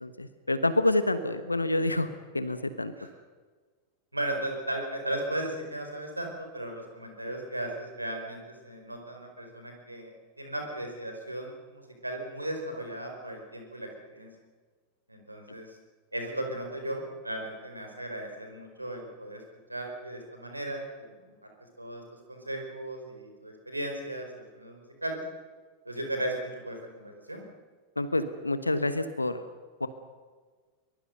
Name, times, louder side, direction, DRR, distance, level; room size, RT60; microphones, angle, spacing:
voice 1, 0.0-2.1 2.3-2.9 28.0-29.4 29.8-29.9, left 2 dB, 85° left, 12 dB, 1.2 m, -27 dB
voice 2, 4.1-10.1 10.4-14.3 15.1-15.7 16.1-19.4 19.7-21.1 21.8-22.0 22.3-25.2 25.8-27.4, right 1 dB, 85° right, 3 dB, 4.9 m, -36 dB
23.5 x 21.5 x 6.7 m, 1.4 s
figure-of-eight pair, 90°, 0 cm